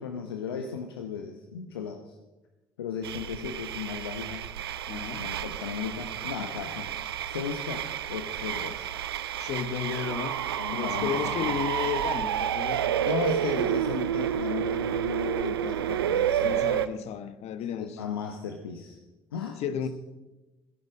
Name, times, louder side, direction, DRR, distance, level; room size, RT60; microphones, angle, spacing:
voice 1, 0.0-2.2 2.8-4.4 5.1-6.9 7.3-8.9 10.6-11.5 13.0-16.6 17.6-19.0 19.3-19.6, left 7 dB, 85° left, 5 dB, 0.9 m, -35 dB
sound 1, 3.0-16.9, right 10 dB, 85° right, 0.5 m, -30 dB
voice 2, 4.9-5.2 9.3-10.4 10.7-12.8 13.5-13.7 16.4-18.0 19.6-19.9, left 8 dB, 60° left, 12 dB, 1.1 m, -33 dB
16.5 x 10.5 x 6.3 m, 1.1 s
hypercardioid pair, 55°, 12 cm